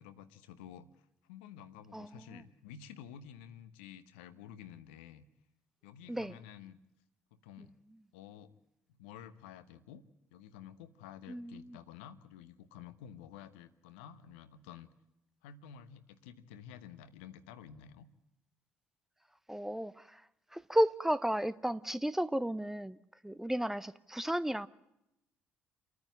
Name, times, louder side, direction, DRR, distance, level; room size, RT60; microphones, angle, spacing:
voice 1, 0.0-5.2 5.8-6.8 7.3-7.7 8.1-8.5 9.0-10.0 10.3-14.9 15.4-18.1, left 9 dB, 75° left, 1.0 m, -51 dB
voice 2, 1.9-2.4 6.1-6.3 11.3-11.8 19.5-20.2 20.5-23.0 23.2-24.7, equal, 5° right, 0.7 m, -33 dB
28.5 x 9.6 x 9.9 m
figure-of-eight pair, 50°, 6 cm